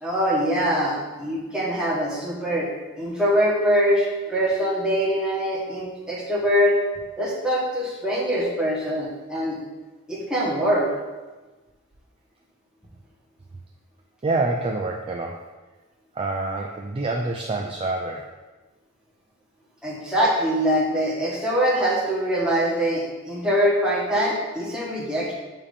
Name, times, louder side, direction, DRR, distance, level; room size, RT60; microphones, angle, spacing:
voice 1, 0.0-2.7 3.0-6.8 7.2-9.6 10.1-10.9 19.8-25.3, equal, 5° right, -5 dB, 1.3 m, -23 dB
voice 2, 14.2-15.4 16.1-18.3, right 2 dB, 25° right, 0 dB, 0.4 m, -26 dB
7.3 x 2.8 x 5.1 m, 1.2 s
head